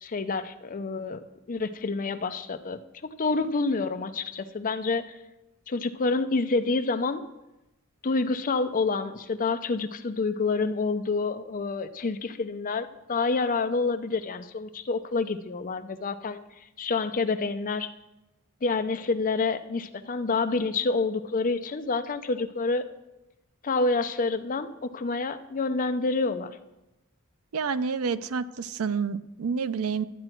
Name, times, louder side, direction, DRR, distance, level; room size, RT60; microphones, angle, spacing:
voice 1, 0.0-1.2 1.5-5.1 5.7-7.2 8.0-16.4 16.8-17.9 18.6-22.8 23.6-26.6, left 3 dB, 40° left, 9 dB, 0.6 m, -28 dB
voice 2, 27.5-30.1, right 5 dB, 85° right, 14 dB, 0.5 m, -29 dB
12.5 x 8.8 x 4.5 m, 0.96 s
head